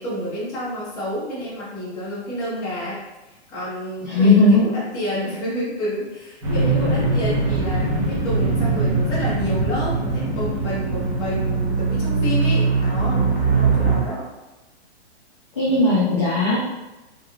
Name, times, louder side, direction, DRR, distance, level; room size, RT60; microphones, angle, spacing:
voice 1, 0.0-3.0 3.5-14.3, equal, 10° left, -11 dB, 0.9 m, -29 dB
voice 2, 4.0-4.7 15.6-16.6, left 2 dB, 25° left, -8 dB, 0.4 m, -17 dB
sound 1, 6.4-14.0, right 3 dB, 30° right, 0.9 m, -21 dB
3.6 x 3.4 x 2.2 m, 1.0 s
hypercardioid pair, 175°, 34 cm